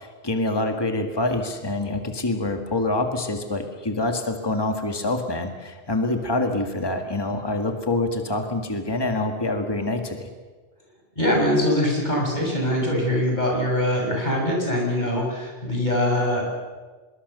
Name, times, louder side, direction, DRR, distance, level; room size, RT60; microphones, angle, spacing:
voice 1, 0.0-10.3, left 2 dB, 20° left, 5 dB, 1.9 m, -26 dB
voice 2, 11.1-16.4, left 1 dB, 40° left, -1 dB, 6.8 m, -23 dB
25.0 x 22.0 x 6.9 m, 1.3 s
omnidirectional pair, 1.2 m